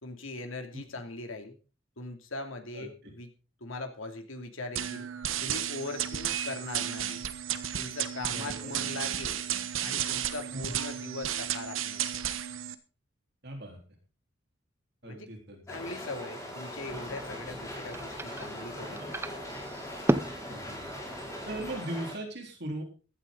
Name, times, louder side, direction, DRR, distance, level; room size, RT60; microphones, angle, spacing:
voice 1, 0.0-1.6 2.0-3.3 3.6-5.1 5.4-7.2 7.8-9.4 9.8-12.2 15.0-19.1, left 2 dB, 90° left, 6 dB, 2.7 m, -40 dB
sound 1, 4.7-12.7, right 10 dB, 85° right, 1.2 m, -33 dB
voice 2, 8.3-8.7 10.5-10.7 13.4-13.8 15.0-15.6 19.0-19.1 20.5-21.0 21.5-22.8, right 1 dB, 55° right, 2 dB, 3.9 m, -39 dB
sound 2, 15.7-22.1, left 1 dB, 15° left, 4.8 m, -41 dB
sound 3, 16.7-21.8, right 1 dB, 10° right, 0.6 m, -35 dB
15.5 x 12.5 x 3.9 m, 0.36 s
head